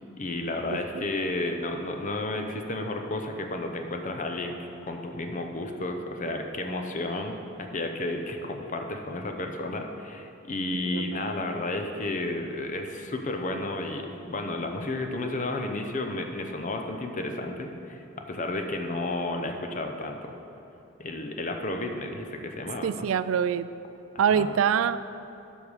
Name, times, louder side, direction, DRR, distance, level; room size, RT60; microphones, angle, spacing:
voice 1, 0.2-4.6 4.8-20.3 21.0-23.1 24.3-24.5, left 2 dB, 40° left, 4 dB, 0.7 m, -32 dB
voice 2, 22.8-23.7 24.2-25.0, right 7 dB, 80° right, 14 dB, 0.3 m, -24 dB
12.0 x 5.5 x 4.9 m, 2.9 s
head